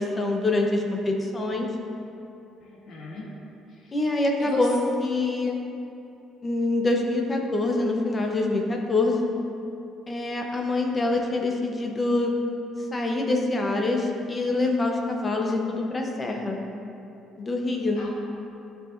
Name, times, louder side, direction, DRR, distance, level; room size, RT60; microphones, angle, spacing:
voice 1, 0.0-1.7 3.9-5.6 6.4-9.2 10.1-12.4 12.9-16.6 17.4-18.0, left 2 dB, 20° left, 1 dB, 0.8 m, -25 dB
voice 2, 2.6-3.3 3.7-3.9 4.4-4.9 18.0-18.1, left 1 dB, 50° left, -5 dB, 1.1 m, -34 dB
13.0 x 4.9 x 2.6 m, 2.8 s
cardioid pair, 155°, 0 cm